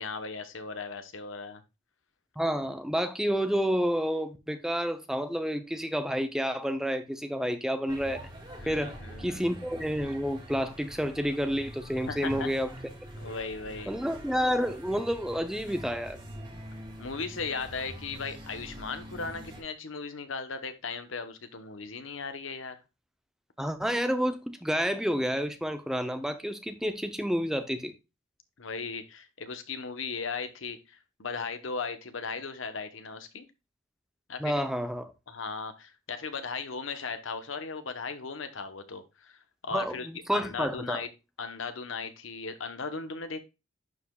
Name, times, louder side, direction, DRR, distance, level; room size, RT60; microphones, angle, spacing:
voice 1, 0.0-1.6 8.6-9.5 12.1-12.5 13.2-13.9 17.0-22.8 28.6-33.5 34.3-34.5 35.3-41.1 41.4-43.4, left 4 dB, 80° left, 1.0 m, -37 dB
voice 2, 2.4-8.2 8.7-12.7 13.9-16.2 23.6-27.9 34.4-35.1 39.7-41.0, equal, 5° right, 0.5 m, -29 dB
sound 1, 7.9-19.6, right 1 dB, 20° right, 2.2 m, -44 dB
11.0 x 4.9 x 2.3 m
head